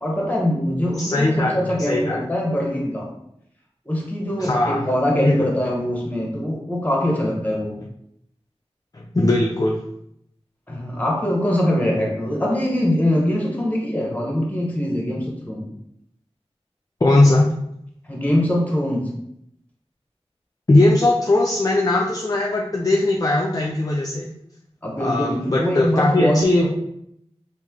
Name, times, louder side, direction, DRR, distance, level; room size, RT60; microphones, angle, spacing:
voice 1, 0.0-3.1 3.9-7.8 10.7-15.7 18.0-19.1 24.8-26.7, left 1 dB, 15° left, -2 dB, 1.0 m, -23 dB
voice 2, 1.0-2.2 4.4-5.5 8.9-9.8 17.0-17.5 20.7-24.3 25.0-26.7, left 2 dB, 35° left, -2 dB, 0.4 m, -19 dB
3.1 x 2.6 x 3.6 m, 0.75 s
wide cardioid pair, 45°, 11 cm